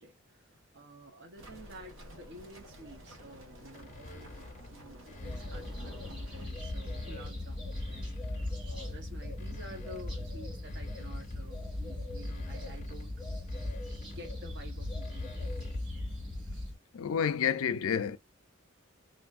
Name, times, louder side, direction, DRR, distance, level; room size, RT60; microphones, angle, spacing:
voice 1, 0.0-13.2 14.0-15.4 16.4-16.7, right 1 dB, 55° right, 0.8 m, -51 dB
sound 1, 1.4-6.5, equal, 70° right, 1.1 m, -51 dB
sound 2, 3.7-5.9 6.4-8.8 9.2-16.0, left 2 dB, 35° left, 0.5 m, -52 dB
sound 3, 5.2-16.7, left 1 dB, 25° right, 2.0 m, -38 dB
voice 2, 16.9-18.2, left 7 dB, 90° left, 0.4 m, -29 dB
3.4 x 2.6 x 2.3 m
head